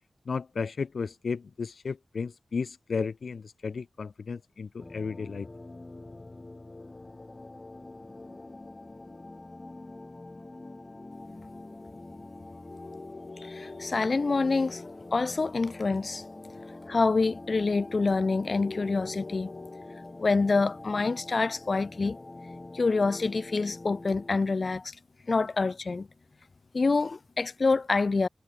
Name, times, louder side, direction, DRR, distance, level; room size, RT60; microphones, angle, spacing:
voice 1, 0.3-5.5, left 5 dB, 85° left, 1.2 m, -34 dB
sound 1, 4.8-24.4, left 2 dB, 35° left, 5.4 m, -45 dB
voice 2, 12.7-16.2 16.9-22.2 22.7-25.0 25.3-26.1 26.7-28.3, left 3 dB, 60° left, 1.9 m, -27 dB
cardioid pair, 55°, 0 cm